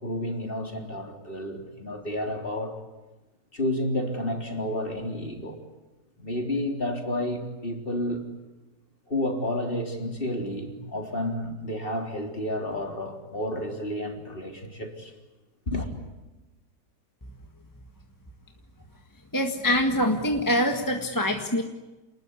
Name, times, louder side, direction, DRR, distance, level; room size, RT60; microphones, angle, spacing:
voice 1, 0.0-2.8 3.5-5.6 6.2-8.2 9.1-15.1 15.7-15.9, left 1 dB, 35° left, 4 dB, 3.9 m, -30 dB
voice 2, 19.3-21.6, left 1 dB, 10° left, 4 dB, 1.7 m, -24 dB
29.0 x 20.5 x 9.9 m, 1.1 s
omnidirectional pair, 1.7 m